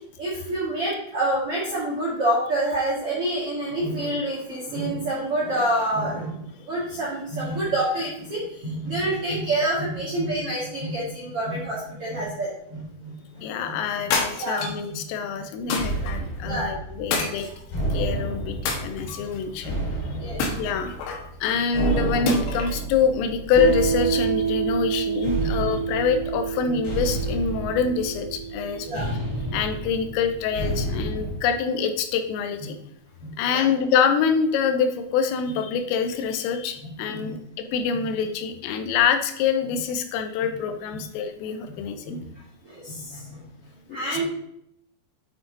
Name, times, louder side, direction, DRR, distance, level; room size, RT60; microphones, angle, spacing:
voice 1, 0.2-6.4 6.7-13.7 14.4-14.8 15.3-15.4 16.4-16.7 17.1-17.2 19.0-19.1 19.4-19.5 20.1-20.8 25.3-25.4 28.8-29.1 29.5-29.6 33.2-33.7 37.1-37.3 39.6-39.7 40.9-41.0 41.7-42.3 42.6-43.5 43.9-44.2, right 1 dB, 50° right, -7 dB, 1.7 m, -28 dB
voice 2, 13.4-17.5 17.9-19.8 20.6-20.9 21.4-29.1 29.5-32.8 33.4-42.2 43.9-44.1, left 6 dB, 85° left, 7 dB, 3.5 m, -25 dB
sound 1, 14.1-14.9 15.7-16.1 17.1-17.9 18.7-19.4 20.4-21.3 22.3-22.8, left 4 dB, 70° left, 3.3 m, -28 dB
sound 2, 15.8-31.4, right 2 dB, 45° left, 4.0 m, -31 dB
Piano, 23.6-30.8, right 7 dB, 70° right, 3.3 m, -29 dB
8.7 x 5.9 x 3.9 m, 0.74 s
omnidirectional pair, 5.7 m